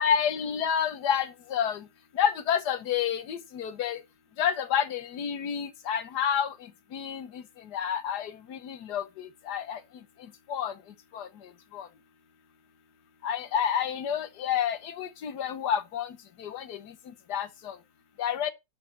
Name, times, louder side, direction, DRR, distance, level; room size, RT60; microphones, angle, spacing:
voice 1, 0.0-1.8 2.1-4.0 4.4-6.5 6.9-7.4 7.7-9.8 10.5-10.7 11.1-11.3 11.7-11.9 13.2-16.9 17.3-17.8 18.2-18.5, left 8 dB, 65° left, 1.5 m, -29 dB
11.5 x 4.2 x 5.9 m
omnidirectional pair, 1.9 m